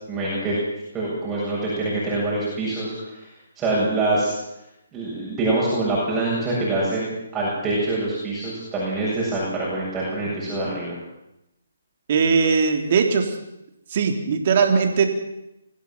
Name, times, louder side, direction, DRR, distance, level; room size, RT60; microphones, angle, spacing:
voice 1, 0.1-0.6 0.9-3.2 3.6-4.3 4.9-11.0, right 2 dB, 15° right, -6 dB, 7.6 m, -25 dB
voice 2, 12.1-13.4 13.9-15.2, right 5 dB, 45° right, 4 dB, 3.7 m, -20 dB
24.5 x 16.0 x 7.6 m, 0.87 s
figure-of-eight pair, 140°, 0 cm